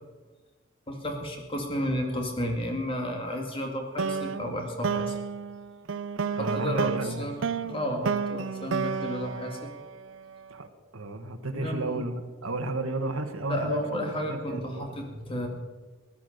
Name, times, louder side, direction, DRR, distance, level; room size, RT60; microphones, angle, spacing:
voice 1, 0.9-5.2 6.4-7.4 7.6-9.7 11.5-12.0 13.5-15.5, equal, 25° left, 3 dB, 2.2 m, -32 dB
sound 1, 4.0-10.4, right 5 dB, 60° right, 0.5 m, -31 dB
voice 2, 6.4-7.3 10.5-10.7 10.9-15.0, right 2 dB, 80° right, 7 dB, 1.5 m, -33 dB
16.0 x 12.0 x 6.6 m, 1.3 s
head